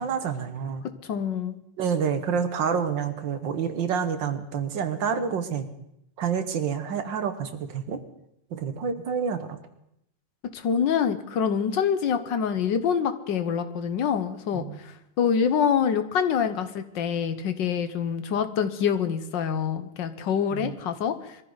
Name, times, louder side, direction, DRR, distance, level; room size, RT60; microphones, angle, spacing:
voice 1, 0.0-0.9 1.8-5.7 6.2-8.0 8.5-9.6 14.5-14.8 20.5-20.8, right 7 dB, 80° right, 9 dB, 1.9 m, -28 dB
voice 2, 1.0-1.6 10.5-21.4, left 7 dB, 75° left, 10 dB, 1.7 m, -26 dB
22.5 x 14.5 x 4.0 m, 0.79 s
omnidirectional pair, 2.0 m